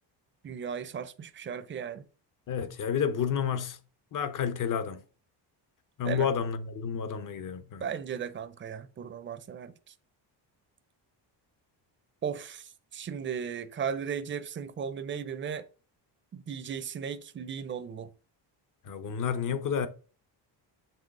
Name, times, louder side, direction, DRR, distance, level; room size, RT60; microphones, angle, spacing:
voice 1, 0.4-2.1 6.0-6.3 7.8-9.9 12.2-15.7 16.3-18.1, right 7 dB, 30° right, 0.6 m, -36 dB
voice 2, 2.5-3.8 4.1-5.0 6.0-7.8 18.8-19.9, left 7 dB, 45° left, 0.9 m, -30 dB
7.4 x 3.2 x 5.3 m
cardioid pair, 135°, 42 cm